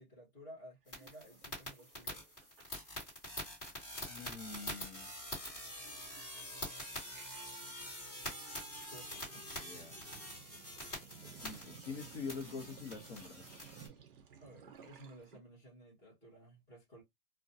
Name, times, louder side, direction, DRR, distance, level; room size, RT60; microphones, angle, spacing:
voice 1, 0.0-2.2 7.0-7.5 8.9-9.4 14.4-17.0, equal, 10° left, 0.7 m, -56 dB
sound 1, 0.9-13.9, equal, 25° left, 1.3 m, -46 dB
Sink (filling or washing), 0.9-3.1 3.4-3.7 4.0-15.4, right 8 dB, 40° right, 0.5 m, -58 dB
voice 2, 4.1-5.1 9.5-9.9 11.4-13.6, left 5 dB, 50° left, 0.7 m, -45 dB
2.4 x 2.2 x 2.6 m
supercardioid pair, 175°, 44 cm